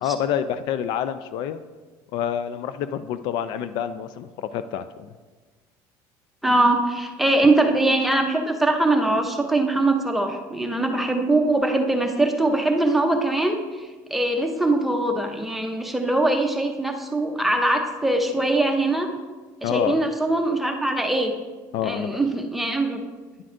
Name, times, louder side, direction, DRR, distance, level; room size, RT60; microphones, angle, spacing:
voice 1, 0.0-1.6 2.1-5.1 19.6-20.0 21.7-22.2, left 9 dB, 60° left, 12 dB, 0.3 m, -27 dB
voice 2, 6.4-19.1 19.6-21.3 21.8-23.0, right 2 dB, ahead, 3 dB, 0.7 m, -22 dB
10.0 x 7.6 x 2.6 m, 1.3 s
cardioid pair, 145°, 9 cm